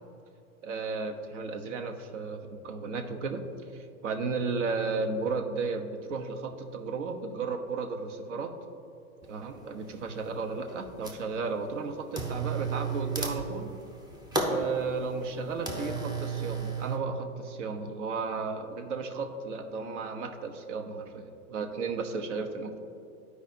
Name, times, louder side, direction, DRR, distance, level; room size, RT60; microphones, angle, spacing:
voice 1, 0.6-3.4 3.7-8.5 9.3-13.7 14.4-22.8, right 4 dB, 60° right, 6 dB, 1.0 m, -34 dB
sound 1, 9.2-9.3 9.9-10.4 10.7-11.4 12.1-17.0, right 3 dB, 10° right, 0.8 m, -33 dB
13.5 x 4.9 x 2.7 m, 2.5 s
hypercardioid pair, 105°, 41 cm